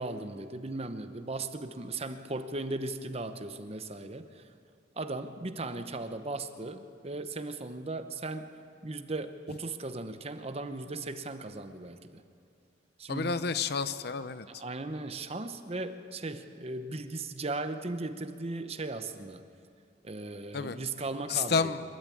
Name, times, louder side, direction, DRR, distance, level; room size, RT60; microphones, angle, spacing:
voice 1, 0.0-4.4 5.0-8.5 8.8-12.2 13.0-13.3 14.5-19.4 20.0-21.7, right 2 dB, 35° right, 9 dB, 0.9 m, -37 dB
voice 2, 13.1-14.5 20.5-20.8 21.3-21.8, left 5 dB, 60° left, 13 dB, 0.7 m, -30 dB
25.5 x 12.5 x 8.6 m, 2.4 s
head